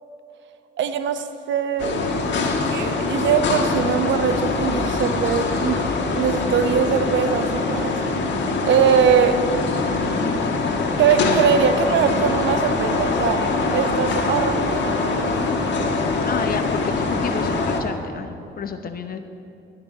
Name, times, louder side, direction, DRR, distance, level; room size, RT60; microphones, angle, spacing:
voice 1, 0.8-2.4 2.7-8.0 8.6-9.4 11.0-13.4 13.7-15.3, right 7 dB, 70° right, 9 dB, 0.8 m, -22 dB
sound 1, 1.8-17.8, left 3 dB, 65° left, 1.7 m, -23 dB
voice 2, 16.2-19.2, left 6 dB, 50° left, 7 dB, 0.8 m, -30 dB
14.5 x 5.9 x 8.2 m, 2.7 s
cardioid pair, 90°, 20 cm